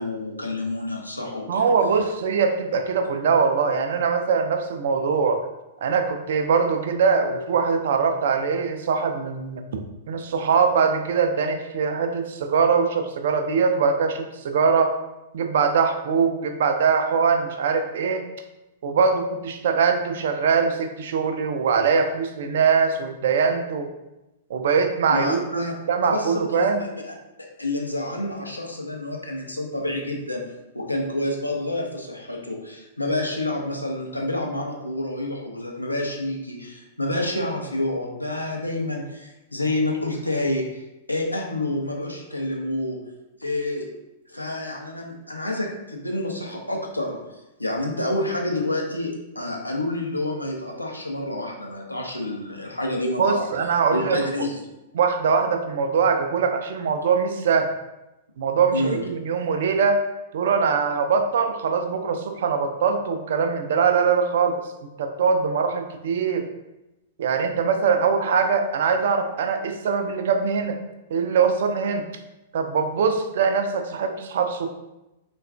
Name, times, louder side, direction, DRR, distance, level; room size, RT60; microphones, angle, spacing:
voice 1, 0.0-1.7 25.1-25.7 26.0-27.1 27.4-30.4 30.7-43.0 43.4-43.9 44.3-47.2 47.6-53.4 53.9-54.6 58.7-59.0, left 1 dB, 90° left, 0 dB, 0.5 m, -28 dB
voice 2, 1.5-5.4 5.8-9.8 10.1-15.0 15.3-18.2 18.8-23.9 24.5-26.8 53.2-54.2 54.9-57.7 58.4-60.1 60.3-64.6 65.0-66.5 67.2-70.8 71.1-72.1 72.5-74.7, right 5 dB, 60° right, 6 dB, 0.3 m, -22 dB
3.5 x 2.2 x 2.3 m, 0.96 s
figure-of-eight pair, 100°, 0 cm